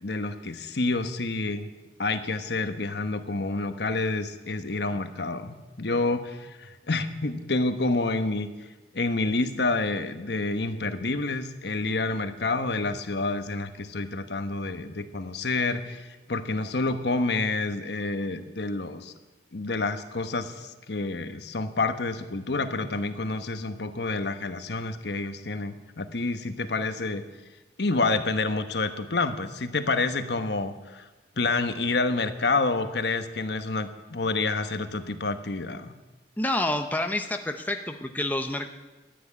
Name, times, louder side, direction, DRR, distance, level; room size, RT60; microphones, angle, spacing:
voice 1, 0.0-1.7 2.0-8.5 8.9-19.1 19.5-27.2 27.8-31.1 31.4-35.9, left 3 dB, 65° left, 9 dB, 1.1 m, -28 dB
voice 2, 36.4-38.7, left 1 dB, 10° left, 5 dB, 0.8 m, -28 dB
14.0 x 9.7 x 9.8 m, 1.2 s
head